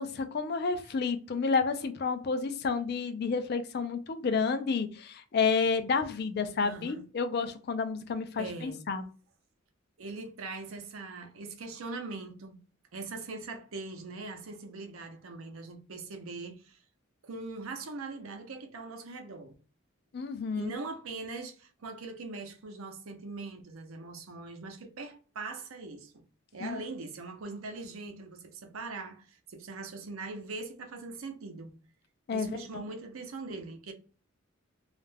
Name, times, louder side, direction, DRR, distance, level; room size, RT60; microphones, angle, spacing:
voice 1, 0.0-9.1 20.1-20.7 26.6-26.8 32.3-32.8, left 5 dB, 50° left, 0.4 m, -30 dB
voice 2, 6.6-7.0 8.4-8.8 10.0-12.6 12.9-16.8 17.2-19.5 20.6-26.2 26.5-31.8 32.3-33.9, right 3 dB, 90° right, 0.6 m, -41 dB
2.4 x 2.1 x 3.2 m
head